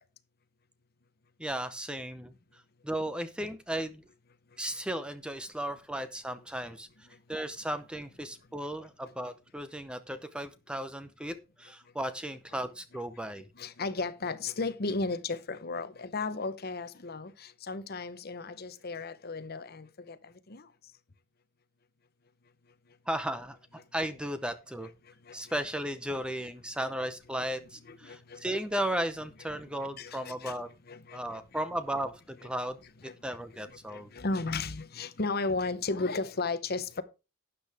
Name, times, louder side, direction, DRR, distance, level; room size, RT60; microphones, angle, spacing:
voice 1, 1.4-4.1 4.6-6.9 7.3-13.4 23.1-24.9 25.3-30.7 31.1-34.1, right 1 dB, 5° right, 0.7 m, -35 dB
voice 2, 13.6-20.2 20.5-20.7 25.3-25.4 27.9-28.4 30.0-30.6 30.9-31.2 33.0-33.4 33.9-37.0, left 3 dB, 45° left, 0.9 m, -34 dB
12.0 x 8.5 x 3.5 m
head